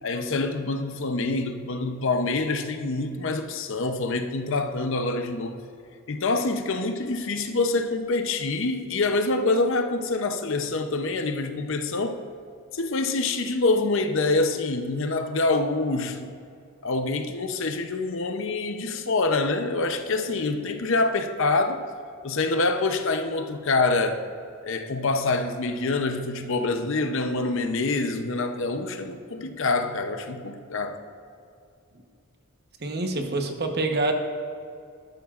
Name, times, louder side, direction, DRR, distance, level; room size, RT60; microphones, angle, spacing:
voice 1, 0.0-5.6 6.1-12.2 12.7-16.3 16.8-21.8 22.2-24.2 24.6-31.0, left 3 dB, 65° left, 7 dB, 0.7 m, -26 dB
voice 2, 32.8-34.1, right 2 dB, 50° right, 4 dB, 1.0 m, -26 dB
13.0 x 12.0 x 2.5 m, 2.4 s
head